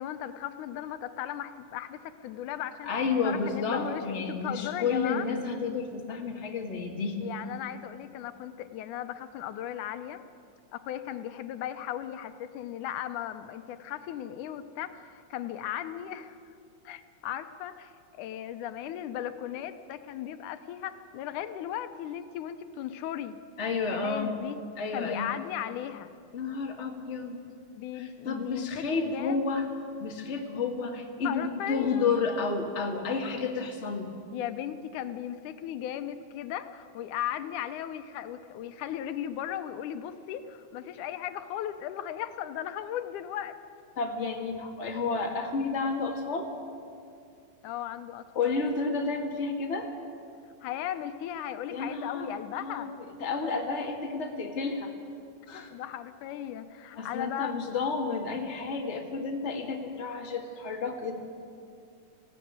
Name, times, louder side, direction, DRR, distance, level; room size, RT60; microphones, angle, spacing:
voice 1, 0.0-2.9 3.2-5.3 7.2-10.2 10.7-16.4 16.9-23.4 23.7-24.6 24.9-26.1 27.7-29.4 31.2-32.1 34.3-43.6 47.6-48.6 50.6-52.9 55.5-57.8, left 11 dB, 85° left, 10 dB, 2.3 m, -37 dB
voice 2, 2.8-7.2 23.6-24.3 24.8-25.3 26.3-27.4 28.0-29.6 30.0-34.2 44.0-46.5 48.3-49.9 51.7-52.9 53.2-54.9 55.5-55.7 57.0-61.2, left 4 dB, 25° left, 1 dB, 1.7 m, -31 dB
19.5 x 16.0 x 9.4 m, 2.4 s
omnidirectional pair, 3.5 m